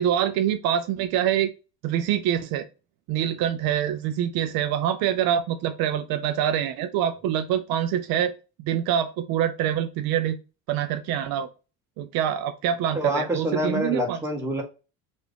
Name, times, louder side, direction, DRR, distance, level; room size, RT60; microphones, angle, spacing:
voice 1, 0.0-1.5 1.8-2.7 3.1-8.3 8.6-10.4 10.7-11.5 12.0-14.2, right 10 dB, 60° right, 9 dB, 0.5 m, -25 dB
voice 2, 12.9-14.6, equal, 5° right, 0 dB, 1.3 m, -26 dB
3.4 x 2.6 x 3.4 m, 0.31 s
supercardioid pair, 90°, 41 cm